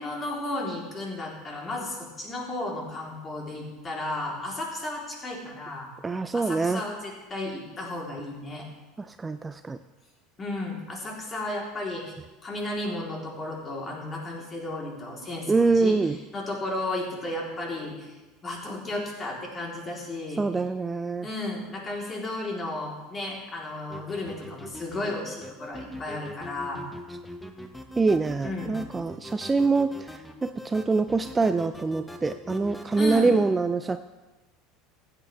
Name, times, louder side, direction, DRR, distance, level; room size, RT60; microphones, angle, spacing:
voice 1, 0.0-5.9 6.3-8.7 10.4-12.1 12.4-16.0 16.3-18.1 18.4-20.4 21.2-26.8 28.4-28.8 33.0-33.4, left 2 dB, 30° left, -2 dB, 3.6 m, -33 dB
voice 2, 6.0-6.8 9.0-9.8 15.5-16.2 20.4-21.3 28.0-34.0, right 4 dB, 20° right, 10 dB, 0.4 m, -25 dB
sound 1, 23.9-33.2, left 1 dB, 5° left, 1.1 m, -42 dB
15.5 x 8.8 x 3.4 m, 1.1 s
hypercardioid pair, 75°, 0 cm